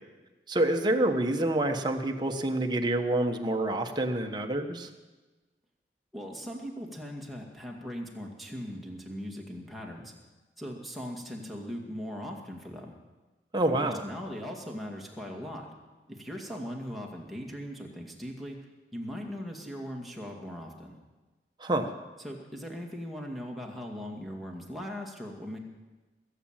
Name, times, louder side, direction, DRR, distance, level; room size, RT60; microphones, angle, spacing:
voice 1, 0.5-4.9 13.5-14.0 21.6-21.9, right 1 dB, 25° right, 4 dB, 1.2 m, -27 dB
voice 2, 6.1-10.1 10.6-12.9 13.8-15.7 16.1-18.6 18.9-20.9 22.2-25.6, equal, ahead, -1 dB, 2.2 m, -39 dB
21.0 x 7.6 x 8.9 m, 1.2 s
head